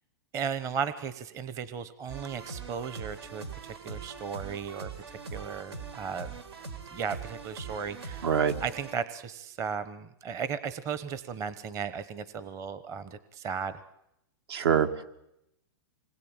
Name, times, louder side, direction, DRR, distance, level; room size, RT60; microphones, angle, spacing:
voice 1, 0.3-6.3 6.9-13.8, right 6 dB, 25° right, 13 dB, 1.0 m, -36 dB
sound 1, 2.1-8.9, right 4 dB, 90° right, 4.0 m, -42 dB
voice 2, 8.2-8.5 14.5-15.0, right 8 dB, 70° right, 9 dB, 2.3 m, -25 dB
26.5 x 20.5 x 8.9 m, 0.83 s
hypercardioid pair, 150°, 13 cm